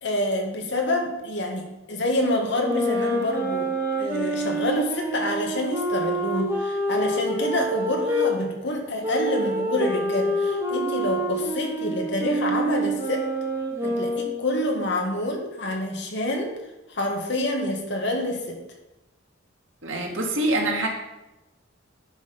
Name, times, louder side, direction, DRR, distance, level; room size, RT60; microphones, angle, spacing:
voice 1, 0.0-13.3 13.8-16.5 16.9-18.6, left 1 dB, 65° left, 2 dB, 1.8 m, -27 dB
sound 1, 2.5-8.3 9.0-14.5, right 1 dB, 15° right, 2.3 m, -27 dB
voice 2, 19.8-20.9, right 1 dB, 85° right, 1 dB, 2.0 m, -25 dB
10.5 x 6.1 x 5.3 m, 1.0 s
head